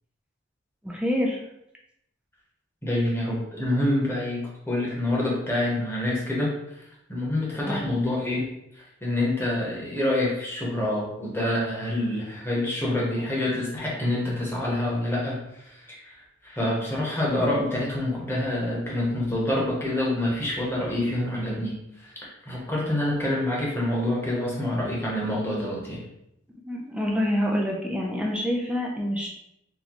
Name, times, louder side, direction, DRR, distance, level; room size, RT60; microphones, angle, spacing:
voice 1, 0.8-1.4 7.6-7.9 26.7-29.3, equal, 5° right, -1 dB, 0.4 m, -26 dB
voice 2, 2.8-6.8 7.1-16.2 16.4-22.1 22.5-26.0, left 1 dB, 10° left, -5 dB, 0.9 m, -27 dB
3.9 x 2.2 x 2.9 m, 0.81 s
head